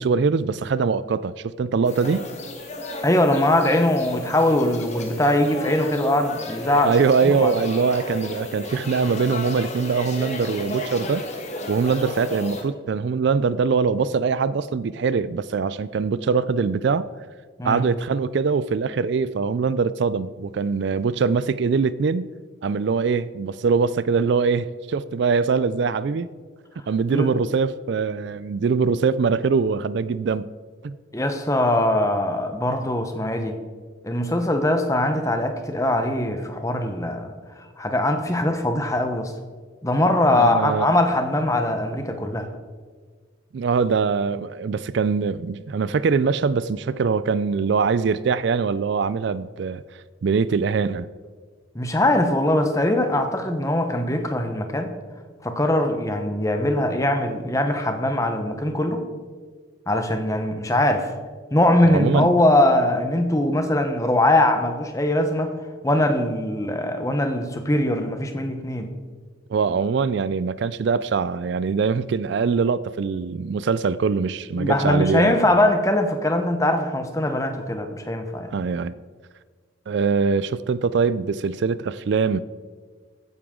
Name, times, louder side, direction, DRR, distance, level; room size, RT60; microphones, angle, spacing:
voice 1, 0.0-2.3 6.8-11.2 11.7-17.1 17.6-22.3 22.6-26.3 26.9-30.5 30.8-30.9 40.3-40.9 43.5-49.8 50.2-51.1 61.8-62.3 69.5-75.3 78.5-79.0 79.9-82.4, right 5 dB, 60° right, 16 dB, 0.3 m, -22 dB
sound 1, 1.8-12.6, left 2 dB, 35° left, 1.4 m, -33 dB
voice 2, 3.0-7.0 7.3-7.5 17.6-17.8 27.1-27.3 31.1-33.6 34.0-37.3 37.8-39.3 39.8-42.5 51.7-54.9 55.4-59.1 59.9-61.1 61.5-65.5 65.8-68.9 74.5-78.5, left 1 dB, 15° left, 6 dB, 0.9 m, -21 dB
15.0 x 9.7 x 3.8 m, 1.5 s
head